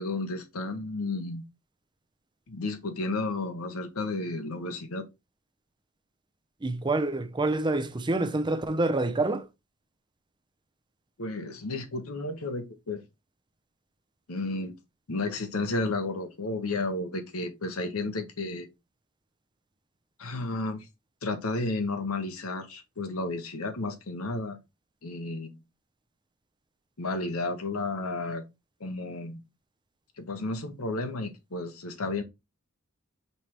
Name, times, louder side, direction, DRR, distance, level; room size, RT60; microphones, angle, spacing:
voice 1, 0.0-1.4 2.5-5.0 11.2-13.0 14.3-14.7 15.1-18.7 20.2-20.9 21.2-24.6 25.0-25.6 27.0-28.4 28.8-29.4 30.2-32.2, left 2 dB, 80° left, 1.0 m, -32 dB
voice 2, 6.6-9.5, right 2 dB, 20° right, 0.6 m, -27 dB
5.5 x 3.3 x 3.0 m
head